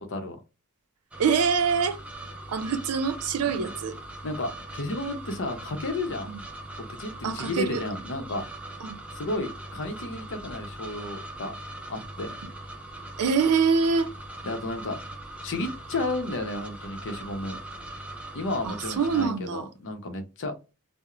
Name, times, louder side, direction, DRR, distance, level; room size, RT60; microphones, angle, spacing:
sound 1, 1.1-19.3, right 1 dB, 5° right, 0.4 m, -40 dB
voice 1, 1.2-2.0 2.5-4.0 6.3-6.4 7.2-7.8 8.8-9.0 13.2-14.1 18.6-19.7, right 5 dB, 85° right, 0.4 m, -25 dB
voice 2, 4.2-6.3 6.8-8.4 9.1-11.5 11.9-12.3 14.4-15.0 15.4-17.6 18.3-20.5, left 2 dB, 60° left, 0.6 m, -32 dB
2.4 x 2.0 x 2.9 m
head